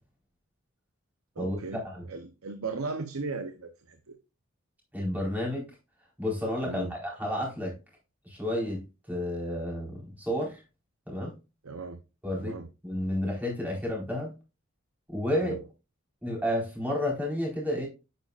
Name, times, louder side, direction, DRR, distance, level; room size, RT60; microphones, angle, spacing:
voice 1, 1.4-4.2 6.6-6.9 11.6-12.0 12.3-12.7 15.4-15.6, right 3 dB, 80° right, 0.9 m, -37 dB
voice 2, 4.9-5.6 6.2-7.7 8.2-10.6 11.1-11.3 12.2-12.5 12.8-14.3 15.1-15.6 16.2-17.9, left 1 dB, 10° right, 4.4 m, -31 dB
9.2 x 9.2 x 2.5 m
head